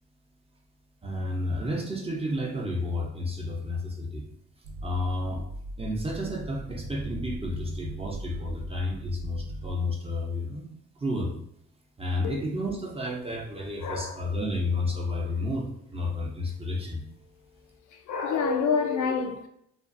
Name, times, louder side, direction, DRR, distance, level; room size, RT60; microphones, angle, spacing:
voice 1, 1.0-4.2 4.8-5.5 5.8-11.4 12.0-17.0, left 1 dB, 20° right, 0.6 m, -31 dB
sound 1, 4.6-9.7, equal, 65° right, 0.5 m, -38 dB
voice 2, 13.8-14.2 18.1-19.5, left 5 dB, 75° left, 0.4 m, -27 dB
2.5 x 2.3 x 2.5 m
cardioid pair, 90°, 30 cm